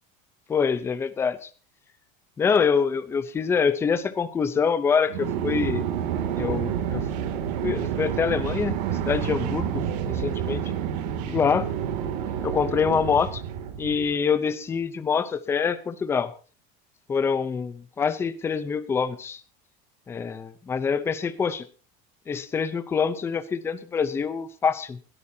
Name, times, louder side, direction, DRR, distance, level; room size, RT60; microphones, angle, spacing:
voice 1, 0.5-1.5 2.4-5.9 6.3-7.0 7.6-10.6 11.3-11.7 12.4-13.4 13.8-16.3 17.1-19.4 20.1-21.6 22.3-25.0, left 6 dB, 10° left, 13 dB, 0.7 m, -25 dB
sound 1, 5.1-14.1, right 9 dB, 75° right, 2.6 m, -29 dB
21.0 x 13.0 x 2.8 m, 0.38 s
cardioid pair, 180°, 21 cm